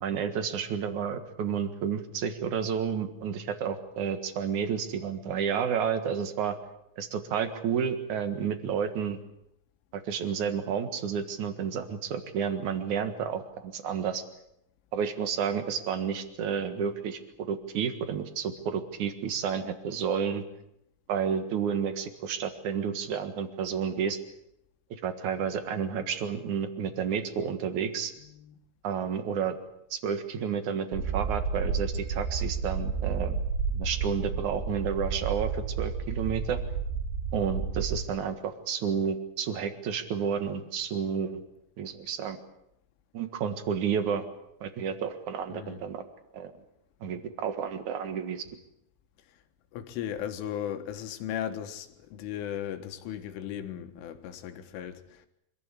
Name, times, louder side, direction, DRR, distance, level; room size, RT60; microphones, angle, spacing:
voice 1, 0.0-6.6 7.0-9.2 9.9-14.2 14.9-17.2 17.5-20.4 21.1-24.2 25.0-28.1 28.8-29.6 29.9-33.4 33.7-36.6 37.3-41.4 41.8-42.4 43.1-44.2 44.6-46.0 46.3-46.5 47.0-48.4, right 7 dB, 60° right, 2.1 m, -31 dB
voice 2, 28.2-28.6 45.5-45.8 49.7-55.3, left 10 dB, 80° left, 4.0 m, -37 dB
sound 1, 30.9-38.0, right 5 dB, 85° right, 6.0 m, -31 dB
25.5 x 15.5 x 10.0 m
omnidirectional pair, 5.6 m